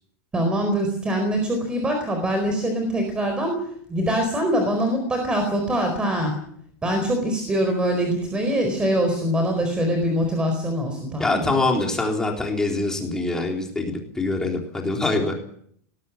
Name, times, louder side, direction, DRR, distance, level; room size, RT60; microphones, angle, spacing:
voice 1, 0.3-6.4 6.8-11.6, equal, 10° right, 5 dB, 4.4 m, -23 dB
voice 2, 11.2-15.3, left 2 dB, 5° left, 1 dB, 3.7 m, -24 dB
21.5 x 17.5 x 8.3 m, 0.65 s
supercardioid pair, 160°, 9 cm